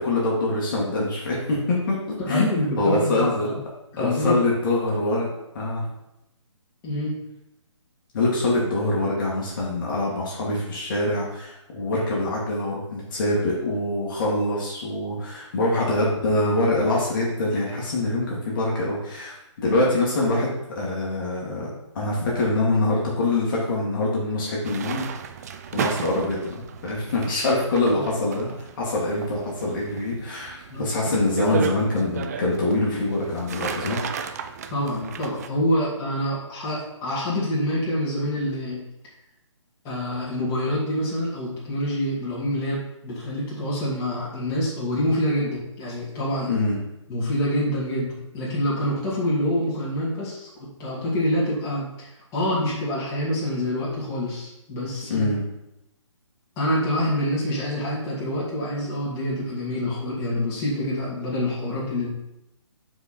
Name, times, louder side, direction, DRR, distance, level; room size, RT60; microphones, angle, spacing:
voice 1, 0.0-1.9 2.3-3.5 4.0-5.8 8.1-19.3 19.6-21.7 21.9-25.0 25.4-25.5 25.7-26.5 26.8-34.2 46.5-46.8 55.1-55.4, left 2 dB, 40° left, -4 dB, 2.1 m, -24 dB
voice 2, 2.2-3.6 3.9-4.4 6.8-7.1 28.0-28.1 30.7-30.8 34.7-38.8 39.8-46.5 47.1-50.5 50.8-55.3 56.6-62.1, left 1 dB, 20° left, -7 dB, 2.4 m, -26 dB
sound 1, 24.6-35.5, right 7 dB, 30° right, 0.4 m, -34 dB
7.9 x 4.9 x 4.4 m, 0.88 s
figure-of-eight pair, 140°, 16 cm